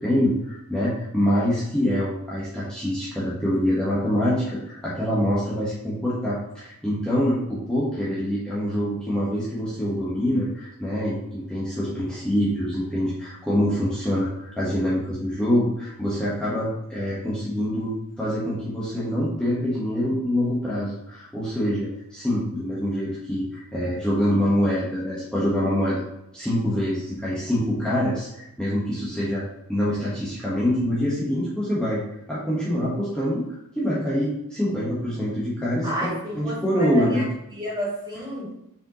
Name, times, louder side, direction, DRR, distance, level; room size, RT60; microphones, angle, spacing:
voice 1, 0.0-17.9 18.2-26.0 26.3-29.4 29.7-32.0 32.3-36.1 36.3-37.2, equal, 5° left, -8 dB, 1.2 m, -25 dB
voice 2, 35.8-37.2 37.5-38.5, equal, 20° right, -6 dB, 2.4 m, -30 dB
6.6 x 5.1 x 3.0 m, 0.84 s
head